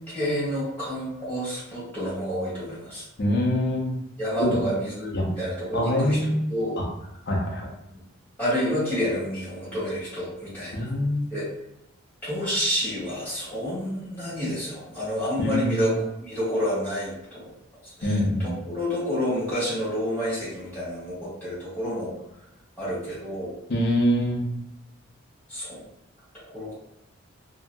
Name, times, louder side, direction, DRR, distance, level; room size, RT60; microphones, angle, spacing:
voice 1, 0.1-3.0 4.2-6.8 7.9-8.0 8.4-10.9 11.3-11.5 12.2-15.9 16.2-17.5 17.8-22.1 22.8-23.5 25.5-25.8 26.3-26.7, equal, 10° left, -11 dB, 1.5 m, -29 dB
voice 2, 3.2-3.9 4.4-4.6 5.1-5.3 5.7-6.4 6.8-6.9 7.3-7.7 10.7-11.3 15.4-15.9 18.0-18.5 23.7-24.4, left 1 dB, 55° left, -1 dB, 0.6 m, -24 dB
2.8 x 2.7 x 2.2 m, 0.85 s
head